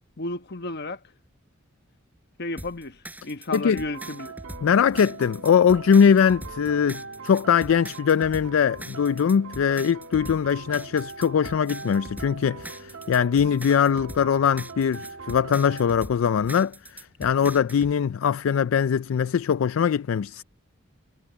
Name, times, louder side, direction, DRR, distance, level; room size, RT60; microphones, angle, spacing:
voice 1, 0.2-1.0 2.4-4.3, left 2 dB, 55° left, 1.2 m, -33 dB
sound 1, 2.6-17.9, right 1 dB, 10° right, 6.5 m, -42 dB
voice 2, 3.5-3.8 4.6-20.4, left 7 dB, 75° left, 0.4 m, -21 dB
sound 2, 3.7-16.0, right 5 dB, 90° right, 1.8 m, -41 dB
head